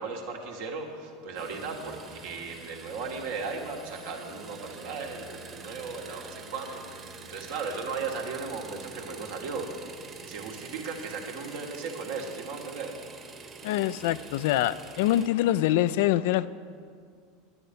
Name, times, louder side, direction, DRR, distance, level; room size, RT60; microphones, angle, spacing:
voice 1, 0.0-9.7 10.2-12.9, right 4 dB, 70° right, 1 dB, 1.6 m, -36 dB
sound 1, 1.3-15.3, right 4 dB, 35° right, 1.4 m, -46 dB
voice 2, 13.6-16.5, left 13 dB, 65° left, 15 dB, 0.3 m, -25 dB
11.0 x 9.5 x 5.2 m, 2.2 s
hypercardioid pair, 80°, 0 cm